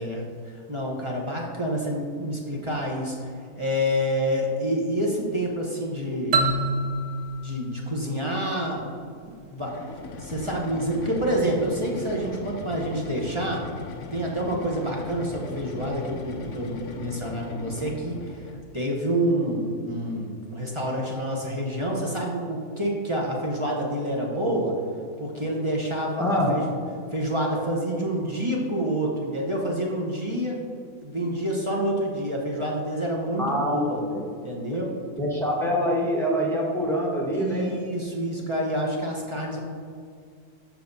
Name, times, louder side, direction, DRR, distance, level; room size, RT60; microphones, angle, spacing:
voice 1, 0.0-6.5 7.4-8.9 9.2-9.8 10.2-13.6 14.1-24.7 25.2-26.6 27.1-30.6 31.0-34.0 34.4-34.9 37.3-39.6, equal, 25° right, -2 dB, 0.7 m, -28 dB
sound 1, 6.3-9.0, right 2 dB, 60° right, 0.9 m, -27 dB
sound 2, 9.6-18.7, left 4 dB, 65° left, 0.8 m, -39 dB
voice 2, 33.4-33.9 35.2-37.7, equal, ahead, -4 dB, 1.1 m, -25 dB
12.5 x 4.5 x 2.7 m, 2.3 s
omnidirectional pair, 1.6 m